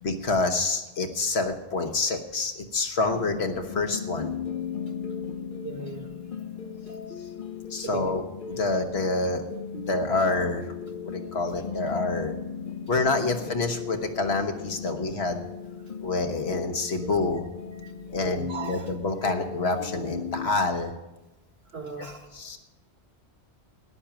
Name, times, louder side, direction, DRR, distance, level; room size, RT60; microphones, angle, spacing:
voice 1, 0.0-4.3 7.7-9.4 9.7-10.7 11.0-12.3 12.9-15.4 16.0-17.5 18.1-20.9 22.3-22.6, left 3 dB, 70° left, 5 dB, 1.5 m, -27 dB
sound 1, 3.1-20.5, left 6 dB, 50° left, 1.0 m, -37 dB
voice 2, 5.6-6.1 6.9-7.0 7.8-8.1 13.4-13.5 17.8-17.9 18.2-18.9 21.7-22.3, right 4 dB, 65° right, 5 dB, 1.8 m, -37 dB
14.0 x 10.0 x 6.0 m, 1.0 s
omnidirectional pair, 1.1 m